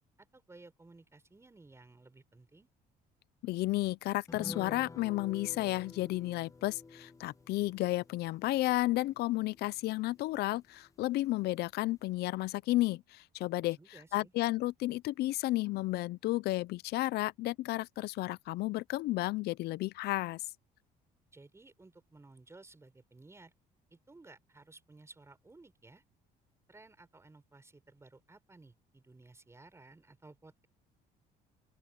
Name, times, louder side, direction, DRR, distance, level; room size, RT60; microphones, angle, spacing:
voice 1, 0.2-2.7 13.8-14.3 21.3-23.5 23.9-26.0 26.7-30.7, right 3 dB, 15° right, 6.0 m, -57 dB
voice 2, 3.4-13.8 14.1-20.4, left 18 dB, 75° left, 0.5 m, -32 dB
sound 1, 4.3-11.1 11.4-11.5 11.8-12.0, left 3 dB, 20° left, 1.0 m, -50 dB
open air
cardioid pair, 110°, 17 cm